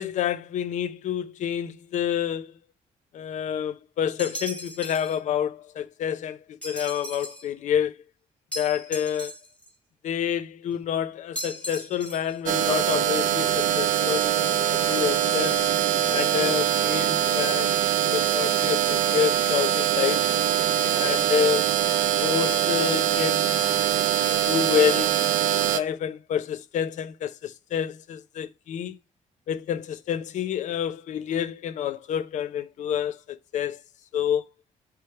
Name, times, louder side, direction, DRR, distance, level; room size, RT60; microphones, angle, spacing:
voice 1, 0.0-2.5 3.1-7.9 8.5-9.3 10.0-14.4 14.7-15.6 16.1-17.7 18.1-20.2 20.9-21.6 22.2-23.8 24.5-25.3 25.7-29.0 29.5-33.8 34.1-34.4, left 9 dB, 65° left, 0.7 m, -28 dB
sound 1, 4.2-5.2 6.6-7.5 8.5-9.7 11.4-12.4, equal, 10° left, 1.6 m, -37 dB
sound 2, 12.5-25.8, right 10 dB, 75° right, 0.7 m, -23 dB
6.7 x 3.4 x 5.6 m
cardioid pair, 140°, 14 cm